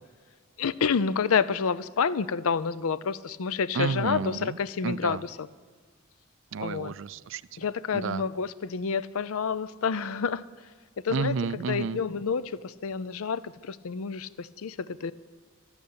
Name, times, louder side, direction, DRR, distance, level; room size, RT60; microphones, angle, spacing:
voice 1, 0.6-5.5 6.6-6.9 7.6-10.4 11.0-11.3 11.7-15.1, left 6 dB, 85° left, 18 dB, 0.5 m, -29 dB
voice 2, 3.7-4.6 4.8-5.2 6.5-7.4 7.9-8.2 11.1-12.0, right 5 dB, 60° right, 18 dB, 0.4 m, -31 dB
12.5 x 12.0 x 8.6 m, 1.5 s
head